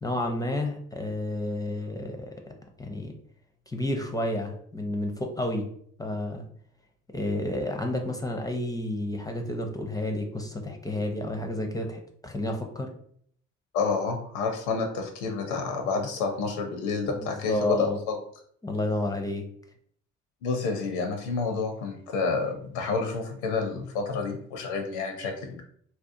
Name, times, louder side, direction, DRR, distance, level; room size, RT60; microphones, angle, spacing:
voice 1, 0.0-2.3 2.8-3.1 3.7-5.7 6.0-6.5 7.1-12.9 17.1-18.0 18.6-19.5, left 1 dB, 10° left, 4 dB, 0.4 m, -30 dB
voice 2, 13.7-18.2 20.4-25.6, left 4 dB, 80° left, 5 dB, 0.5 m, -29 dB
2.8 x 2.1 x 2.5 m, 0.63 s
hypercardioid pair, 55°, 34 cm